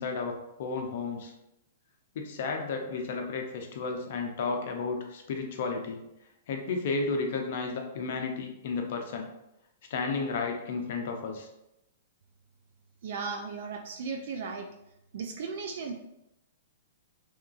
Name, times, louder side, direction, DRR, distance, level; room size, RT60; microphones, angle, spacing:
voice 1, 0.0-1.3 2.2-6.0 6.5-9.3 9.9-11.5, left 4 dB, 60° left, 3 dB, 0.5 m, -33 dB
voice 2, 13.0-14.7 15.1-15.9, right 5 dB, 65° right, 4 dB, 0.3 m, -36 dB
2.9 x 2.3 x 2.4 m, 0.86 s
hypercardioid pair, 120°, 0 cm